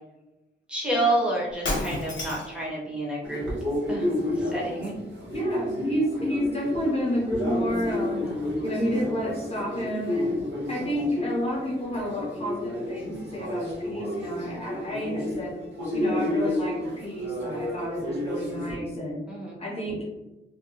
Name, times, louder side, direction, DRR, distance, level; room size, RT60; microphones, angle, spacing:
voice 1, 0.7-3.5 3.9-4.1 4.4-4.9 8.2-8.5 10.8-11.0 19.3-19.6, right 1 dB, 5° right, -5 dB, 0.8 m, -29 dB
Shatter, 1.5-2.6, left 1 dB, 70° left, 0.9 m, -30 dB
sound 1, 3.2-18.8, left 1 dB, 80° right, 0.8 m, -31 dB
voice 2, 5.3-8.2 8.6-10.4 10.7-15.6 15.9-19.2 19.6-20.0, equal, 30° left, -4 dB, 0.6 m, -30 dB
2.6 x 2.1 x 2.7 m, 1.0 s
wide cardioid pair, 160°, 19 cm